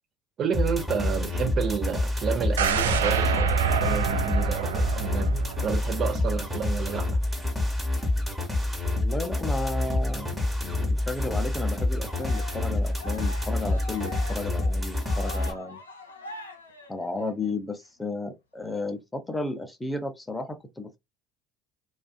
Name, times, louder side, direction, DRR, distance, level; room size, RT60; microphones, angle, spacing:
voice 1, 0.4-7.1, right 7 dB, 45° right, 0.8 m, -30 dB
sound 1, 0.5-15.5, left 2 dB, 10° right, 1.2 m, -27 dB
sound 2, 2.6-6.5 6.9-7.0, right 7 dB, 80° right, 0.3 m, -27 dB
voice 2, 9.0-15.8 16.9-21.0, left 2 dB, 10° left, 0.6 m, -33 dB
Cheering, 12.0-17.5, left 3 dB, 90° left, 0.5 m, -43 dB
2.4 x 2.4 x 2.3 m
figure-of-eight pair, 65°, 0 cm